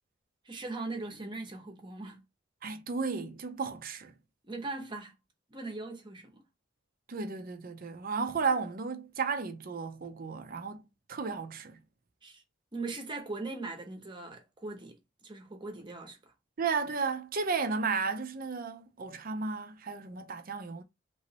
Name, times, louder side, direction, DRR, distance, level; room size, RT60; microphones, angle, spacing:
voice 1, 0.4-2.2 4.4-5.1 5.5-6.4 12.2-12.4 12.7-16.2, right 3 dB, 25° right, 0.8 m, -40 dB
voice 2, 2.6-4.1 7.1-10.8 11.1-11.8 16.6-20.8, right 5 dB, 45° right, 0.5 m, -33 dB
3.1 x 3.0 x 2.8 m
head